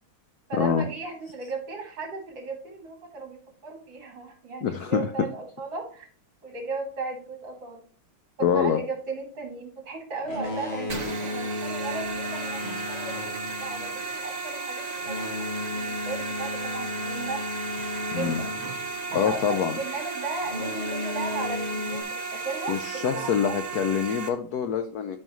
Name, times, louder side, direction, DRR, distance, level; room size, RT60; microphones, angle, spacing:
voice 1, 0.5-6.1 6.4-7.8 8.4-17.4 18.1-18.5 19.1-23.5, right 4 dB, 65° right, 1 dB, 3.1 m, -36 dB
voice 2, 4.6-5.1 8.4-8.8 18.1-18.4 19.1-19.8 22.7-25.2, left 7 dB, 75° left, 9 dB, 0.9 m, -25 dB
Boat Water vehicle, 10.2-19.6 20.4-22.0, left 2 dB, 35° left, 1.3 m, -35 dB
sound 1, 10.9-24.3, right 4 dB, 45° right, 0.5 m, -34 dB
12.0 x 5.5 x 3.1 m, 0.43 s
omnidirectional pair, 2.3 m